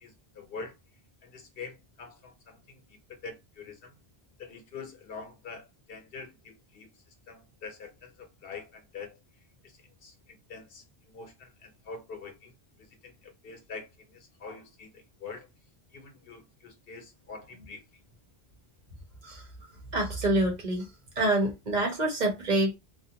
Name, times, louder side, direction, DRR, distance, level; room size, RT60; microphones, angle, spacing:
voice 1, 0.0-0.7 1.2-2.8 3.1-3.9 4.4-6.9 7.3-9.1 10.0-12.5 12.8-15.5 15.9-17.8, left 4 dB, 70° left, 0.8 m, -45 dB
voice 2, 19.9-20.9 21.2-22.7, right 1 dB, 50° right, 0.9 m, -26 dB
2.4 x 2.0 x 2.7 m
omnidirectional pair, 1.0 m